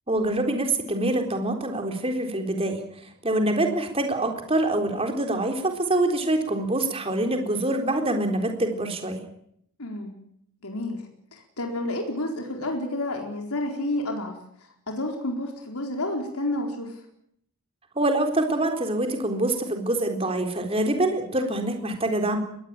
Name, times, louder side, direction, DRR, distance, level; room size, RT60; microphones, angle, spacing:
voice 1, 0.1-2.8 3.2-9.2 18.0-22.4, right 1 dB, 25° right, 4 dB, 3.9 m, -25 dB
voice 2, 9.8-10.2 10.6-14.4 14.9-17.0, left 1 dB, 85° left, 2 dB, 4.4 m, -30 dB
22.0 x 19.0 x 9.1 m, 0.70 s
head